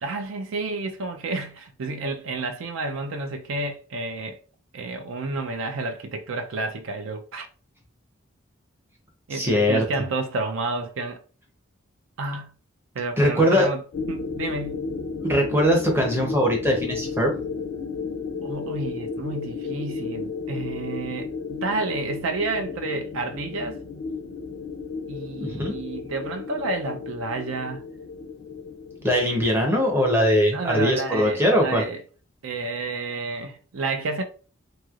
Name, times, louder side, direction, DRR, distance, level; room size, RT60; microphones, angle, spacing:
voice 1, 0.0-4.4 4.7-7.5 9.3-11.2 12.2-12.5 12.9-14.8 18.4-23.8 25.1-27.8 30.5-32.0 32.4-34.2, right 3 dB, 70° right, 0.5 m, -30 dB
voice 2, 9.3-9.8 13.2-13.7 15.2-17.3 25.4-25.7 29.0-31.8, equal, 10° right, 0.7 m, -21 dB
sound 1, 13.9-30.9, left 4 dB, 70° left, 0.4 m, -34 dB
3.1 x 2.8 x 2.4 m
head